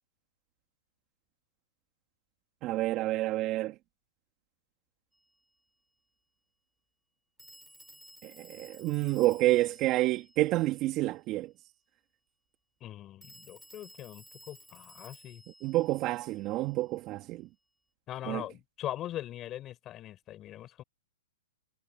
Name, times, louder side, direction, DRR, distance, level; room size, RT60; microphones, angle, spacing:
voice 1, 2.6-3.7 8.2-11.5 15.6-17.5 18.3-18.4, right 17 dB, 30° right, 2.2 m, -29 dB
Telephone, 5.1-5.3 7.4-11.1 13.2-16.9, equal, ahead, 5.5 m, -56 dB
voice 2, 12.8-15.4 18.1-20.8, left 13 dB, 25° left, 4.8 m, -41 dB
hypercardioid pair, 140°, 0 cm